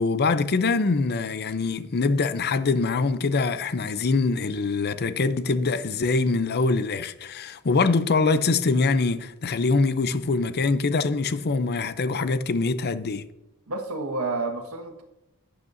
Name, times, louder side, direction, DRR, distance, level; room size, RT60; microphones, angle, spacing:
voice 1, 0.0-13.2, left 3 dB, 50° left, 0.6 m, -24 dB
voice 2, 13.7-15.0, right 3 dB, 85° right, 1.6 m, -30 dB
12.0 x 8.7 x 2.6 m
head